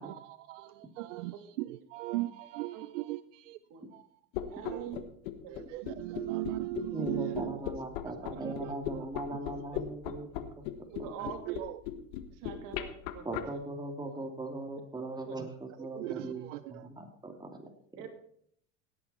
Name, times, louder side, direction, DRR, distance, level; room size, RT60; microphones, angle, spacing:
voice 1, 0.0-3.6 3.9-4.1 4.5-5.0 5.5-7.6 8.3-9.4 9.7-9.8 11.2-11.8 12.5-12.6 15.8-16.9, right 17 dB, 80° right, 15 dB, 0.6 m, -39 dB
sound 1, 4.3-13.4, left 13 dB, 65° left, 1.5 m, -37 dB
voice 2, 4.5-5.0 5.4-5.5 8.3-8.5 10.9-11.6 12.3-13.5 15.3-15.4 15.9-16.0 18.0-18.1, right 9 dB, 60° right, 5 dB, 3.0 m, -44 dB
voice 3, 6.9-10.7 11.0-11.1 13.2-18.0, right 2 dB, 10° right, 3 dB, 2.7 m, -40 dB
17.0 x 8.7 x 4.4 m, 0.66 s
hypercardioid pair, 95°, 37 cm